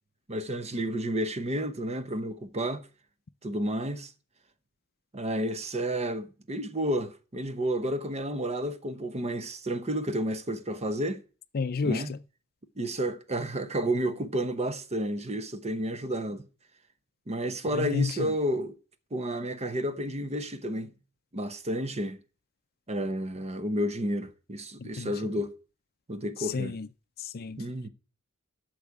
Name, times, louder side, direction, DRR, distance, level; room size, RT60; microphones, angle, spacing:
voice 1, 0.3-2.9 3.4-4.1 5.1-11.2 11.8-12.1 12.8-16.5 17.3-18.7 19.1-20.9 21.3-22.2 22.9-25.5 26.1-26.8 27.6-27.9, right 1 dB, 30° right, 0.9 m, -31 dB
voice 2, 11.5-12.2 17.7-18.3 24.8-25.1 26.5-26.9 27.2-27.6, left 4 dB, 45° left, 0.5 m, -31 dB
8.4 x 6.3 x 8.2 m
head